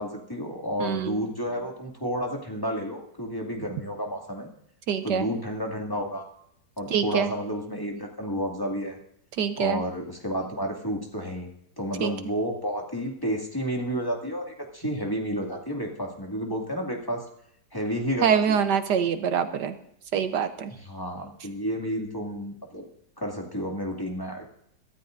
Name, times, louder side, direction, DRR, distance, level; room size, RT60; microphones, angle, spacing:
voice 1, 0.0-4.5 5.0-6.2 6.8-9.0 9.6-11.5 11.8-17.2 17.7-18.6 20.8-22.8 23.2-24.4, equal, 10° left, 0 dB, 2.3 m, -31 dB
voice 2, 0.8-1.2 4.9-5.3 6.9-7.3 9.4-9.8 12.0-12.1 18.2-19.7 20.1-20.7, right 7 dB, 75° right, 9 dB, 1.5 m, -25 dB
23.0 x 13.0 x 2.6 m, 0.71 s
omnidirectional pair, 1.9 m